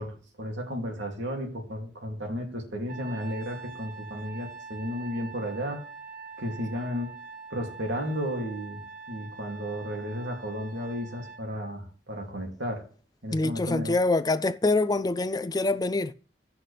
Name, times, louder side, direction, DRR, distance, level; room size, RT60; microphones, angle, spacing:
voice 1, 0.0-5.8 6.4-7.1 7.5-8.8 9.1-12.8 13.2-13.9, equal, 80° right, 2.8 m, -33 dB
Trumpet, 2.9-11.4, right 4 dB, 50° right, 1.3 m, -44 dB
voice 2, 13.3-16.1, left 2 dB, 20° left, 0.5 m, -25 dB
16.5 x 5.8 x 3.4 m
head